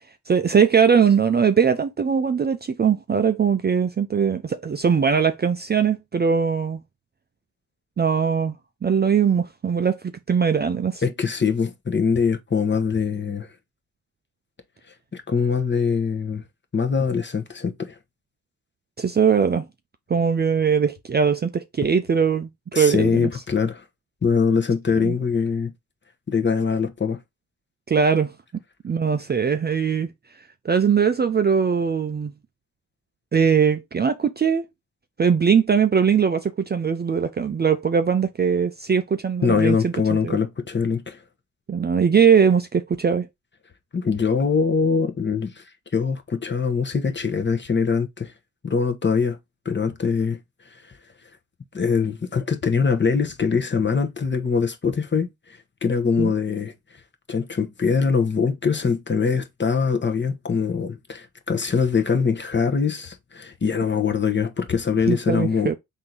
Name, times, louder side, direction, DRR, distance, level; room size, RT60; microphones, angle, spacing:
voice 1, 0.3-6.8 8.0-8.5 8.8-10.0 10.3-11.0 19.0-19.7 20.1-23.3 25.0-25.1 27.9-28.3 28.8-30.1 30.6-32.3 33.3-34.7 35.2-39.9 40.2-40.4 41.7-43.3 56.2-56.3 65.1-65.8, right 6 dB, 25° right, 0.5 m, -20 dB
voice 2, 11.0-13.5 15.1-16.4 16.7-17.9 22.7-23.8 24.2-25.7 26.3-27.2 39.4-41.2 43.9-45.6 45.9-48.3 48.6-49.4 49.6-50.4 50.7-50.8 51.7-56.7 57.3-65.7, left 5 dB, 30° left, 0.9 m, -23 dB
3.7 x 2.7 x 4.5 m
hypercardioid pair, 45°, 39 cm